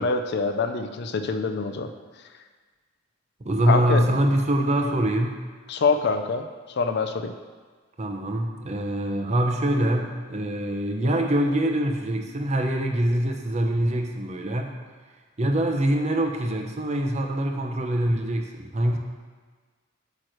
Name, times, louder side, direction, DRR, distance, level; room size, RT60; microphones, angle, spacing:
voice 1, 0.0-1.9 3.6-4.0 5.7-6.5 6.8-7.3, left 4 dB, 55° left, 7 dB, 0.4 m, -25 dB
voice 2, 3.4-5.4 8.0-14.7 15.4-19.0, right 1 dB, 35° right, 3 dB, 0.7 m, -24 dB
8.5 x 3.1 x 6.4 m, 1.5 s
head